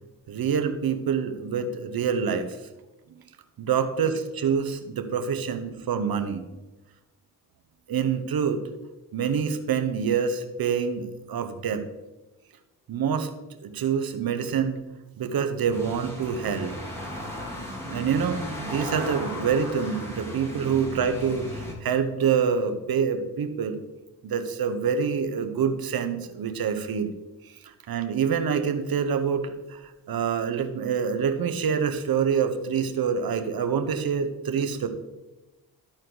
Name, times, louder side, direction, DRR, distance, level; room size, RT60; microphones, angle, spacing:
voice 1, 0.3-2.6 3.6-6.4 7.9-8.6 9.1-11.8 12.9-13.3 13.6-14.8 15.2-16.7 17.9-23.8 24.2-27.1 27.4-34.9, right 7 dB, 55° right, 8 dB, 1.1 m, -26 dB
sound 1, 15.7-21.7, left 1 dB, 5° left, 2.6 m, -36 dB
13.0 x 4.4 x 4.0 m, 1.1 s
cardioid pair, 70°, 42 cm